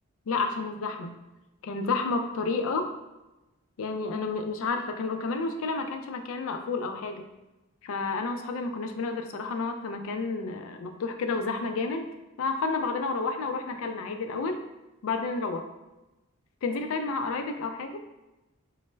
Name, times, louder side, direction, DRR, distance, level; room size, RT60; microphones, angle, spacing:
voice 1, 0.3-1.2 1.6-2.9 3.8-7.3 7.8-14.6 15.0-15.7 16.6-18.0, left 3 dB, 65° left, 6 dB, 0.3 m, -30 dB
3.2 x 2.0 x 3.1 m, 1.0 s
head